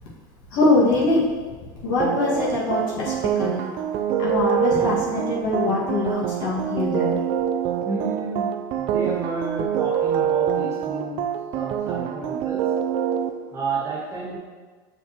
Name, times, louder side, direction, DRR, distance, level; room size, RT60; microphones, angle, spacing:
voice 1, 0.5-1.3 1.8-3.7 4.2-7.2, left 2 dB, 65° left, -6 dB, 2.0 m, -23 dB
sound 1, 2.0-13.3, right 9 dB, 45° right, 0.5 m, -25 dB
voice 2, 7.8-8.5 8.8-11.3 11.5-12.6 13.5-14.4, right 3 dB, 20° right, -5 dB, 1.4 m, -30 dB
7.0 x 5.6 x 3.0 m, 1.4 s
supercardioid pair, 140°, 12 cm